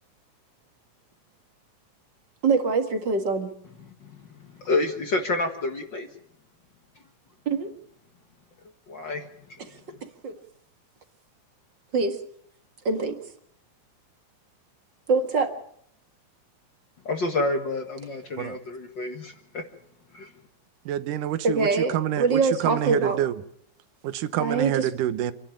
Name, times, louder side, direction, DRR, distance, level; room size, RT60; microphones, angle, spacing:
voice 1, 2.4-3.5 7.5-7.7 9.6-9.7 10.2-10.4 11.9-12.2 12.9-13.2 15.1-15.5 21.4-23.2 24.4-24.9, right 4 dB, 40° right, 1.9 m, -24 dB
voice 2, 4.6-6.1 8.9-9.2 17.1-19.6 20.1-20.3, left 2 dB, 45° left, 1.8 m, -28 dB
voice 3, 20.9-23.3 24.0-25.3, right 12 dB, 85° right, 2.6 m, -27 dB
28.0 x 11.5 x 8.9 m
omnidirectional pair, 3.7 m